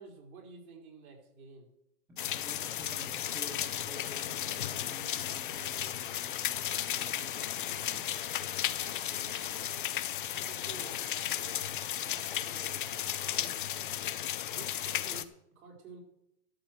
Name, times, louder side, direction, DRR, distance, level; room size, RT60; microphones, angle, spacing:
voice 1, 0.0-1.7 8.8-9.8 10.3-11.6 12.0-14.1 14.5-16.0, right 4 dB, 65° right, 0 dB, 4.4 m, -52 dB
voice 2, 2.1-8.2, right 1 dB, 5° right, -2 dB, 1.4 m, -51 dB
sound 1, 2.2-15.2, left 11 dB, 35° left, 0.4 m, -35 dB
12.0 x 6.2 x 7.7 m, 0.84 s
supercardioid pair, 165°, 45 cm